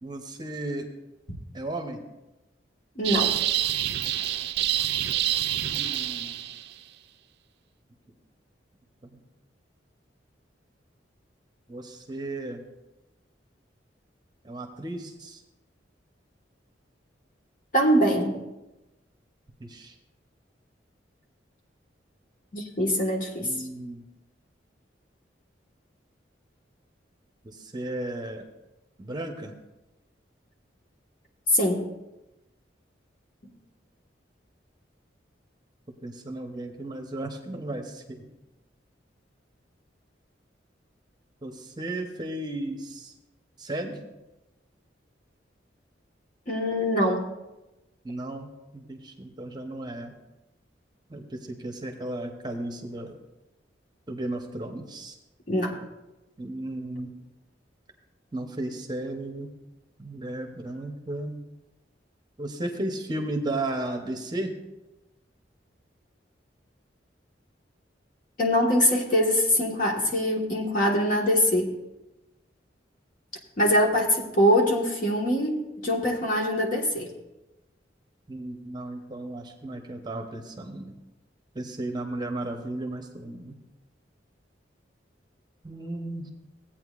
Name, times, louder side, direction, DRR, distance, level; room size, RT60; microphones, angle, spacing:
voice 1, 0.0-0.9 1.5-2.0 5.6-6.3 9.0-9.2 11.7-12.6 14.4-15.4 19.6-19.9 23.4-24.0 27.4-28.5 29.0-29.5 36.0-38.2 41.4-43.1 43.6-44.0 48.0-50.2 51.1-53.1 54.1-55.2 56.4-57.1 58.3-59.5 60.0-61.3 62.4-64.5 78.3-81.0 81.5-83.6 85.6-86.3, right 1 dB, 25° right, 4 dB, 0.8 m, -34 dB
voice 2, 2.9-3.3 17.7-18.4 22.5-23.5 31.5-31.9 46.5-47.3 55.5-55.8 68.4-71.7 73.6-77.1, equal, 45° left, 0 dB, 1.5 m, -23 dB
sound 1, 3.0-6.7, right 12 dB, 60° right, 0.4 m, -27 dB
16.0 x 8.7 x 2.5 m, 0.99 s
head